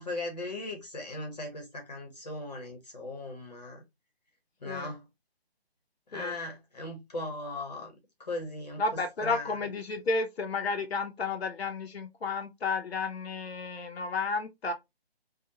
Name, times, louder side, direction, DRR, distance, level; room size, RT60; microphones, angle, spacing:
voice 1, 0.0-3.8 4.6-5.0 6.1-7.9 8.2-8.8 9.2-9.6, left 2 dB, 40° left, 0.7 m, -38 dB
voice 2, 8.8-14.7, left 4 dB, 80° left, 0.5 m, -32 dB
2.8 x 2.0 x 2.7 m
figure-of-eight pair, 145°, 32 cm